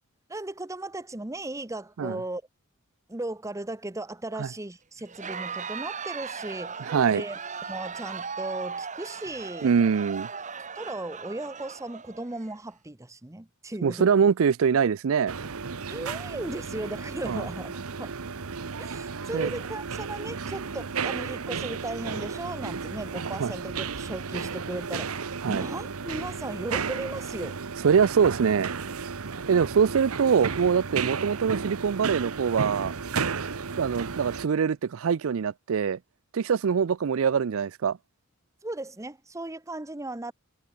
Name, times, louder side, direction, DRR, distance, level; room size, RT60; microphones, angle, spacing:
voice 1, 0.3-2.4 3.1-7.4 7.7-9.7 10.7-14.1 15.1-15.2 15.9-18.2 18.8-27.6 38.6-40.3, right 2 dB, 15° right, 0.8 m, -36 dB
Crowd, 5.0-12.5, right 5 dB, 35° right, 2.3 m, -38 dB
voice 2, 6.8-7.2 9.6-10.3 13.8-15.3 17.3-17.5 19.3-19.5 23.4-23.5 25.4-25.6 27.8-28.7 29.5-32.9 33.8-36.0 36.3-38.0, right 6 dB, 70° right, 0.4 m, -23 dB
sound 1, 15.3-34.5, right 5 dB, 85° right, 1.0 m, -33 dB
head